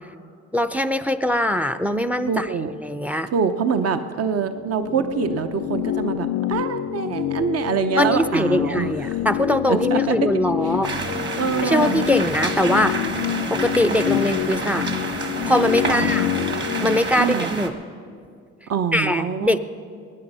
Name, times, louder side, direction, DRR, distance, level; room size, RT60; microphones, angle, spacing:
voice 1, 0.5-2.5 2.8-3.3 8.0-10.9 11.6-13.0 13.5-14.9 15.4-16.3 16.8-17.7 18.9-19.6, left 1 dB, 5° right, 12 dB, 0.5 m, -22 dB
voice 2, 2.3-2.7 3.3-9.2 9.7-10.2 10.6-10.7 11.1-11.9 15.9-16.1 17.2-17.5 18.7-19.6, right 6 dB, 55° right, 9 dB, 0.8 m, -25 dB
sound 1, 4.5-17.0, left 13 dB, 60° left, 0.4 m, -27 dB
sound 2, 10.8-17.7, right 3 dB, 35° right, 1.6 m, -29 dB
21.5 x 9.6 x 5.5 m, 2.3 s
cardioid pair, 90°, 30 cm